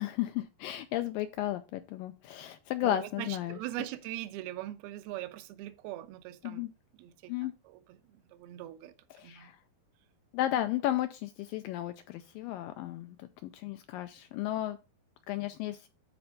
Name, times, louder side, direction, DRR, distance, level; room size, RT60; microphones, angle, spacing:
voice 1, 0.0-3.6 6.4-6.7 7.3-7.5 9.1-9.6 10.3-14.8 15.3-15.9, left 13 dB, 85° left, 2.0 m, -34 dB
voice 2, 2.8-6.6 7.0-8.9 9.2-9.5, right 15 dB, 80° right, 2.7 m, -41 dB
12.5 x 4.3 x 3.8 m
omnidirectional pair, 4.5 m